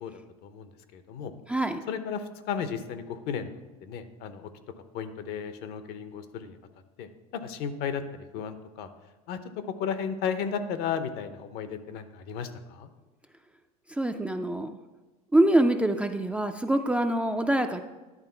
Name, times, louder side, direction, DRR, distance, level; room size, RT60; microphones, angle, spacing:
voice 1, 0.0-1.3 1.9-4.5 4.9-6.6 7.0-8.9 9.3-9.4 9.8-12.9, left 7 dB, 60° left, 10 dB, 0.8 m, -34 dB
voice 2, 1.5-1.8 13.9-14.8 15.3-17.8, right 1 dB, 5° right, 6 dB, 0.4 m, -25 dB
10.5 x 3.6 x 5.6 m, 1.2 s
hypercardioid pair, 95°, 19 cm